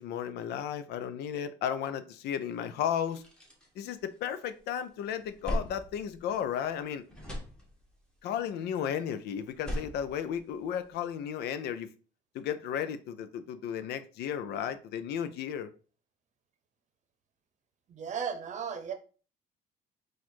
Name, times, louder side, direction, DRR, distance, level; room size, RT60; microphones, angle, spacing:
voice 1, 0.0-3.2 3.8-7.0 8.2-11.9 12.3-15.7, left 9 dB, 75° left, 0.5 m, -34 dB
sound 1, 2.5-2.6 2.9-4.6 5.0-6.8 7.1-8.1 9.4-11.1, equal, 5° left, 1.5 m, -39 dB
voice 2, 17.9-18.9, right 7 dB, 45° right, 0.8 m, -35 dB
4.2 x 2.5 x 4.4 m
cardioid pair, 110°, 17 cm